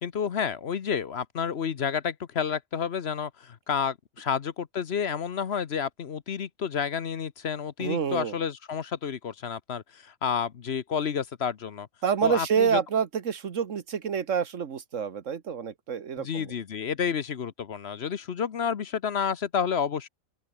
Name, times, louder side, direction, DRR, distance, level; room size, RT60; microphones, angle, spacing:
voice 1, 0.0-11.9 12.2-12.8 16.2-20.1, left 7 dB, 55° left, 1.1 m, -30 dB
voice 2, 7.8-8.4 12.0-16.5, right 7 dB, 75° right, 1.6 m, -27 dB
open air
omnidirectional pair, 1.3 m